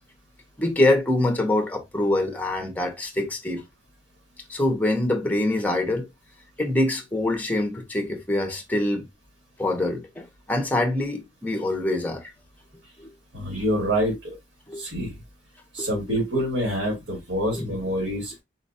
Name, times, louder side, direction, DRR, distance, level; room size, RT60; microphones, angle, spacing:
voice 1, 0.6-3.6 4.5-6.1 6.6-9.1 9.6-12.3 14.7-14.8 15.8-16.0 17.5-17.7, left 1 dB, 10° left, 0.6 m, -25 dB
voice 2, 13.3-14.1 14.8-15.1 15.7-18.3, equal, 90° right, 1.8 m, -26 dB
4.1 x 2.2 x 2.6 m
head